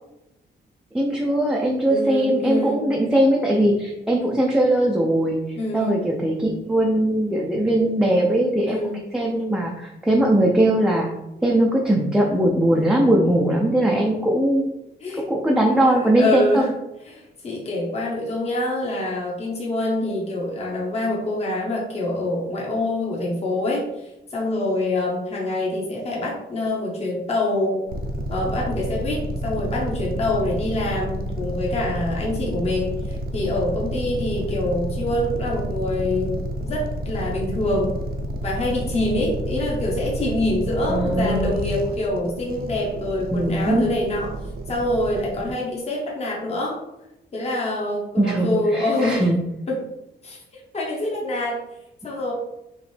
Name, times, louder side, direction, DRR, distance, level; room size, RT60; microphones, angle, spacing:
voice 1, 0.9-5.4 5.7-8.8 9.1-11.1 11.4-14.7 15.3-16.7 40.9-41.5 43.3-43.8 48.2-48.5 48.7-49.4, right 1 dB, 5° right, -2 dB, 0.4 m, -20 dB
voice 2, 1.9-2.9 5.5-6.1 8.6-9.0 12.7-13.0 15.0-15.2 15.6-16.7 17.1-27.8 28.3-38.0 38.4-44.3 44.7-46.8 47.3-49.3 49.7-49.8 50.2-50.4 50.7-51.6 52.0-52.3, left 1 dB, 35° left, -4 dB, 1.0 m, -25 dB
sound 1, 27.9-45.5, right 1 dB, 50° right, 0.5 m, -30 dB
5.0 x 3.1 x 3.3 m, 0.92 s
wide cardioid pair, 170°, 19 cm